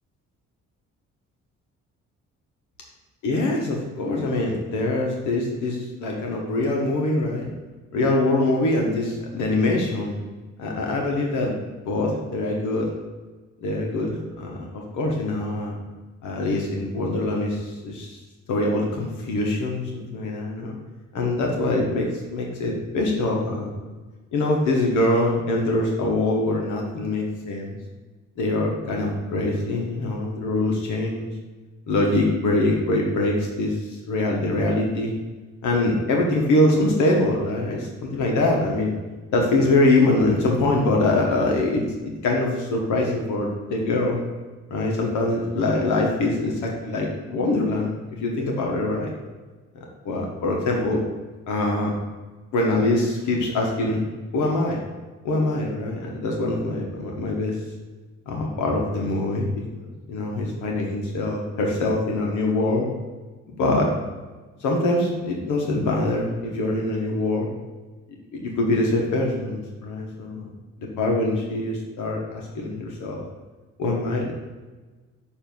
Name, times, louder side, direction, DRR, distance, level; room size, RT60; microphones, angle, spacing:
voice 1, 3.2-7.5 7.9-10.2 10.6-12.9 13.6-15.8 16.2-18.2 18.5-20.8 21.1-23.7 24.3-27.8 28.4-31.3 31.9-35.1 35.6-39.0 39.3-44.2 44.7-47.9 48.2-49.1 49.7-51.0 51.5-51.9 52.5-54.0 54.3-54.8 55.2-57.6 58.3-62.9 63.5-63.9 64.6-67.5 68.3-70.5 70.8-73.2 73.8-74.3, left 2 dB, 85° left, -1 dB, 1.1 m, -24 dB
7.0 x 2.6 x 5.3 m, 1.3 s
cardioid pair, 90°, 30 cm